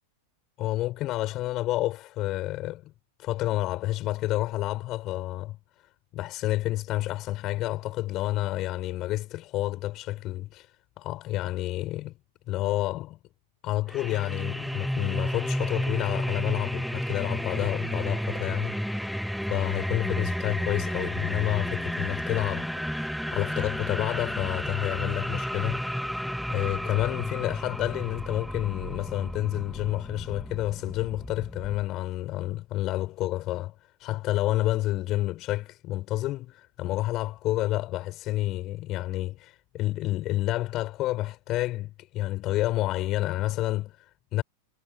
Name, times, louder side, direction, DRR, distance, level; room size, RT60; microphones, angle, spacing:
voice 1, 0.6-2.9 3.2-5.6 6.1-10.7 11.0-12.2 12.5-13.2 13.6-19.2 19.5-26.1 26.5-33.7 34.0-44.4, left 16 dB, 35° left, 6.8 m, -29 dB
sound 1, 13.9-31.8, equal, ahead, 2.1 m, -32 dB
figure-of-eight pair, 90°, 0 cm